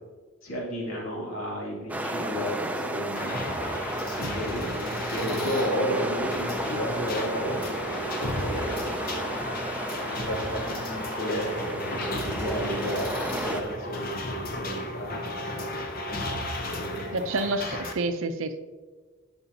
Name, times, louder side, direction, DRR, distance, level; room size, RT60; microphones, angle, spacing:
voice 1, 0.4-3.3 4.2-7.7 8.3-9.3 10.0-15.7 16.6-17.2, equal, 85° left, -3 dB, 2.5 m, -32 dB
sound 1, 1.9-13.6, right 1 dB, 5° right, 0.4 m, -33 dB
sound 2, 3.2-17.9, left 1 dB, 45° left, 0.8 m, -34 dB
voice 2, 17.1-18.6, right 2 dB, 70° right, 9 dB, 0.5 m, -28 dB
10.5 x 6.1 x 2.8 m, 1.4 s
head